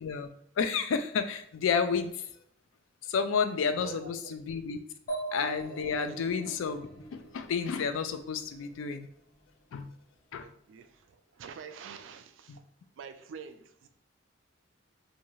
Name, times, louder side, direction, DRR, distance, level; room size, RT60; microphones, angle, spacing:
voice 1, 0.6-2.1 3.1-4.8 5.3-9.1 9.7-9.9 10.3-10.5 12.5-12.6, left 6 dB, 80° left, 0.3 m, -31 dB
voice 2, 3.8-4.4 6.1-6.2 10.4-12.6 13.0-13.9, right 6 dB, 70° right, 0.3 m, -46 dB
sound 1, 5.1-8.7, right 2 dB, 45° left, 0.8 m, -41 dB
2.7 x 2.3 x 3.0 m
head